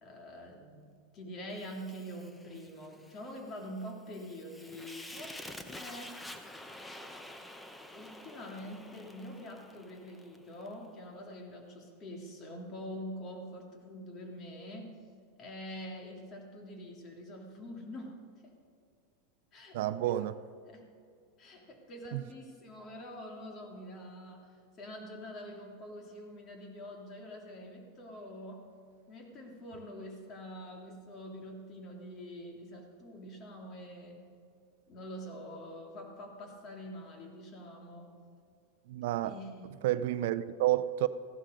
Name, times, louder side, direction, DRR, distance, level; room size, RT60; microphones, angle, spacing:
voice 1, 0.0-6.2 7.9-15.0 15.4-18.5 19.5-20.3 20.7-20.9 21.4-28.6 29.1-34.2 34.9-38.2 39.2-39.8, equal, 35° left, 2.8 m, -45 dB
Fire, 1.5-10.7, left 1 dB, 5° left, 0.9 m, -49 dB
voice 2, 19.7-20.3 22.1-22.2 38.9-39.3 39.8-41.1, right 14 dB, 70° right, 0.5 m, -30 dB
15.0 x 12.0 x 5.3 m
supercardioid pair, 130°, 0 cm